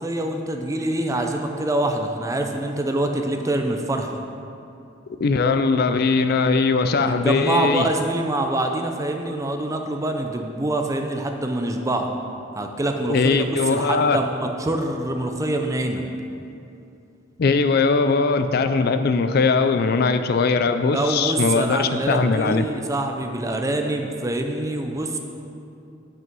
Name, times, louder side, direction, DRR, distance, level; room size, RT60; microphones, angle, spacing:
voice 1, 0.0-4.2 7.0-12.1 12.5-16.0 20.9-25.2, right 1 dB, 15° right, 4 dB, 0.5 m, -25 dB
voice 2, 5.2-7.9 13.0-14.2 17.4-22.6, left 4 dB, 50° left, 9 dB, 0.4 m, -20 dB
8.4 x 6.1 x 5.3 m, 2.6 s
head